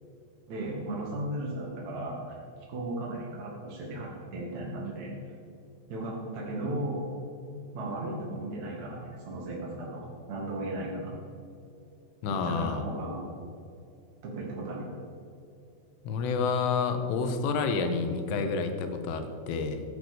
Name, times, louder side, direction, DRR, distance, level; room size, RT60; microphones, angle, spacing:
voice 1, 0.5-2.2 2.7-5.1 5.9-7.1 7.7-11.2 12.3-13.2 14.2-14.9, right 1 dB, 45° right, -4 dB, 2.7 m, -35 dB
voice 2, 12.2-12.8 16.1-19.8, left 5 dB, 85° left, 7 dB, 3.7 m, -29 dB
16.0 x 9.0 x 6.8 m, 2.5 s
omnidirectional pair, 5.6 m